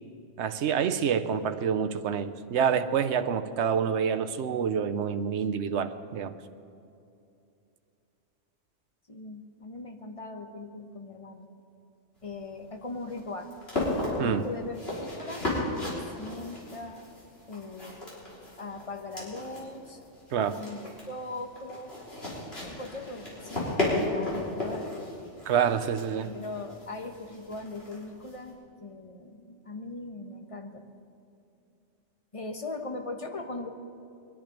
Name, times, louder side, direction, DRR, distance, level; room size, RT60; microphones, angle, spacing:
voice 1, 0.4-6.3 14.2-14.4 20.3-20.6 25.5-26.3, right 7 dB, 70° right, 11 dB, 0.9 m, -27 dB
voice 2, 9.1-11.5 12.2-13.5 14.2-15.5 15.9-17.0 17.5-18.0 18.6-20.0 20.5-21.9 22.6-25.0 25.2-25.4 26.2-30.8 32.3-33.7, left 2 dB, 30° left, 4 dB, 1.1 m, -40 dB
sound 1, 12.2-28.5, left 2 dB, 55° left, 4.0 m, -35 dB
22.5 x 10.5 x 5.2 m, 2.7 s
omnidirectional pair, 1.3 m